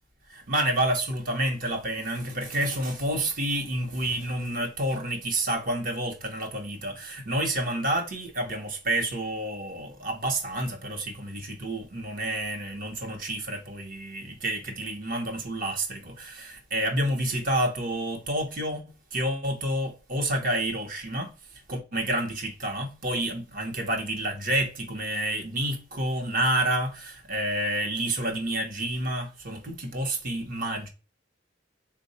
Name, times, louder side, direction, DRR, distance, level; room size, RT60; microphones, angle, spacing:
voice 1, 0.3-21.3 21.7-30.9, right 1 dB, 50° right, 0.9 m, -29 dB
3.6 x 2.2 x 4.0 m
head